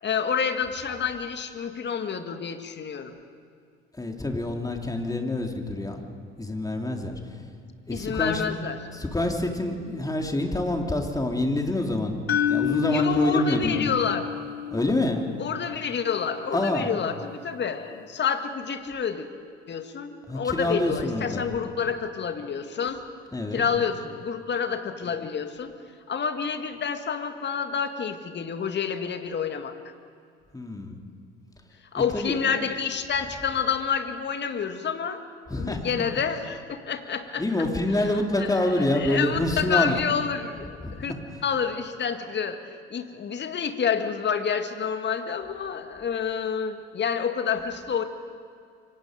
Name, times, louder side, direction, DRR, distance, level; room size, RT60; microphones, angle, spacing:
voice 1, 0.0-3.1 7.9-8.8 12.9-14.3 15.4-19.3 19.7-23.0 23.5-25.7 26.1-29.8 31.9-35.2 35.6-37.4 37.9-41.1 41.4-42.6 42.9-48.0, left 6 dB, 35° left, 7 dB, 2.1 m, -28 dB
voice 2, 4.0-6.0 6.4-7.2 7.9-8.4 8.9-12.2 12.5-13.9 14.7-15.2 16.5-16.9 20.3-21.5 23.3-23.6 30.5-31.0 31.9-32.3 35.5-35.8 37.4-40.0 40.8-41.0, left 1 dB, 10° left, 2 dB, 3.2 m, -26 dB
sound 1, 12.3-16.3, left 9 dB, 85° left, 0.6 m, -29 dB
27.5 x 24.0 x 5.2 m, 2.3 s
figure-of-eight pair, 60°, 31 cm